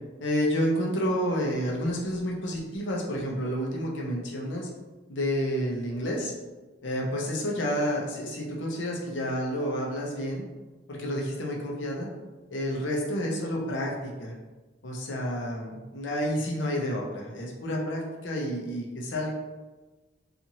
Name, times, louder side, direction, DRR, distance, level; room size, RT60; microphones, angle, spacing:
voice 1, 0.2-4.7 5.1-6.3 6.8-10.4 10.9-12.1 12.5-14.3 14.8-19.3, equal, 75° left, -1 dB, 0.6 m, -30 dB
2.8 x 2.5 x 2.7 m, 1.2 s
head